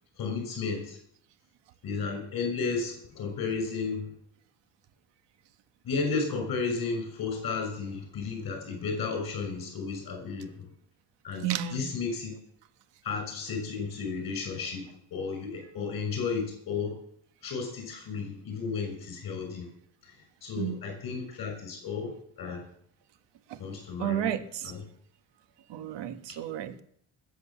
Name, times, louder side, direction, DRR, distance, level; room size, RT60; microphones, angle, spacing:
voice 1, 0.2-1.0 1.8-4.1 5.8-10.7 11.2-12.3 13.0-16.9 17.4-19.7 20.0-20.2 20.4-22.6 23.6-24.3 24.6-24.8, left 4 dB, 55° left, 3 dB, 6.0 m, -33 dB
voice 2, 11.4-11.9 20.6-20.8 23.5-23.6 24.0-24.7 25.7-26.8, right 10 dB, 80° right, 10 dB, 1.6 m, -32 dB
20.0 x 8.3 x 7.2 m, 0.66 s
cardioid pair, 115°, 42 cm